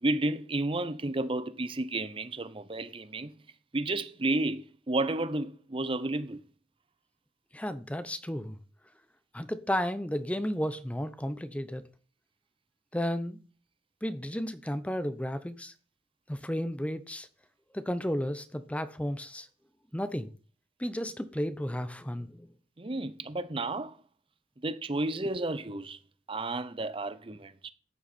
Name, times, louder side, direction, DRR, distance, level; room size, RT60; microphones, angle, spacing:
voice 1, 0.0-3.4 3.7-6.4 22.8-24.0 24.6-26.0 26.3-27.7, right 2 dB, 30° right, 0.7 m, -32 dB
voice 2, 7.5-8.6 9.3-11.8 12.9-13.4 14.0-15.7 16.3-17.3 17.7-19.5 19.9-20.3 20.8-22.5, equal, 10° left, 0.8 m, -33 dB
14.0 x 10.0 x 4.3 m
head